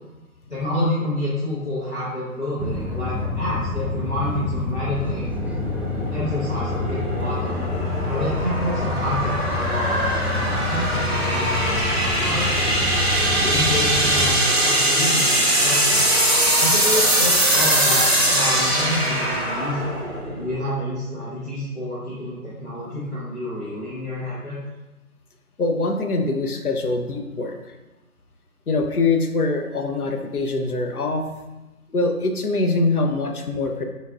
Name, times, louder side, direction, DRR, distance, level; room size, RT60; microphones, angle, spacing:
voice 1, 0.5-5.3 6.1-7.6 8.0-13.0 13.4-16.1 16.6-19.9 20.3-24.6, left 1 dB, 50° left, -11 dB, 1.2 m, -28 dB
sound 1, 2.6-14.4, left 3 dB, 5° right, 0.3 m, -28 dB
sound 2, 5.3-20.7, right 1 dB, 45° right, 0.6 m, -22 dB
voice 2, 25.6-27.6 28.7-31.3 31.9-33.8, left 3 dB, 80° left, 4 dB, 0.7 m, -23 dB
5.3 x 2.4 x 2.4 m, 1.1 s
figure-of-eight pair, 175°, 44 cm